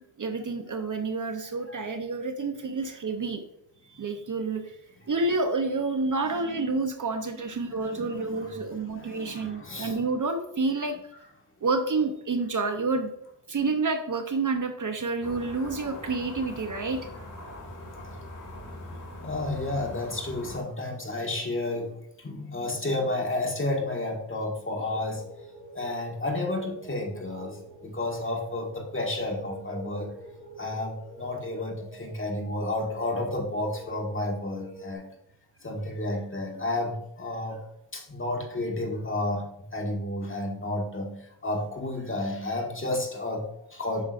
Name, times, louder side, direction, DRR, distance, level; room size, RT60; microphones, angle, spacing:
voice 1, 0.2-3.4 3.9-4.8 5.1-11.0 11.6-13.1 13.5-17.0, right 3 dB, 45° right, 6 dB, 0.8 m, -29 dB
voice 2, 7.6-10.0 10.8-10.9 18.0-18.5 18.8-18.9 19.2-25.2 25.7-30.1 30.6-35.0 35.6-37.7 37.9-39.4 39.7-44.0, left 2 dB, 25° left, 1 dB, 1.6 m, -32 dB
sound 1, 15.2-20.6, left 1 dB, 45° left, 1.6 m, -42 dB
sound 2, 24.8-35.0, equal, 80° right, 1.8 m, -47 dB
8.5 x 6.1 x 2.5 m, 0.77 s
wide cardioid pair, 95°, 44 cm